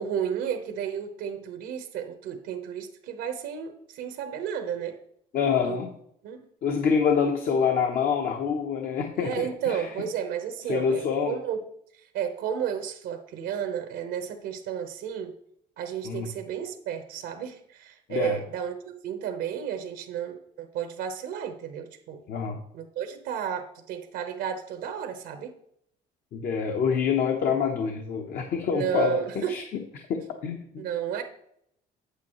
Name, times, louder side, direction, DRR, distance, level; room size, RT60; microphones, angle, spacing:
voice 1, 0.0-5.0 5.6-5.8 6.2-6.4 9.2-11.6 11.9-15.3 15.8-22.2 22.7-25.5 28.7-29.6 30.8-31.2, right 8 dB, 90° right, 6 dB, 1.1 m, -32 dB
voice 2, 5.3-5.9 6.6-9.8 10.7-11.4 16.0-16.3 18.1-18.4 22.3-22.6 26.3-29.2 29.5-29.6 30.1-30.8, left 6 dB, 60° left, 3 dB, 1.0 m, -26 dB
8.3 x 8.2 x 3.1 m, 0.71 s
cardioid pair, 110°, 17 cm